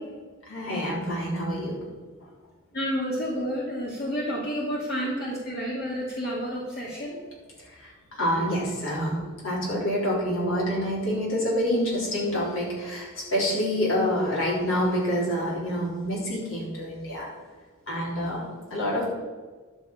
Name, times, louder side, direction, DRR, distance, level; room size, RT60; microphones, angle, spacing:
voice 1, 0.5-1.8 7.8-17.3 17.9-19.1, equal, 70° left, -4 dB, 4.0 m, -27 dB
voice 2, 2.7-7.2, equal, 50° left, -5 dB, 2.1 m, -30 dB
11.0 x 7.1 x 5.6 m, 1.4 s
head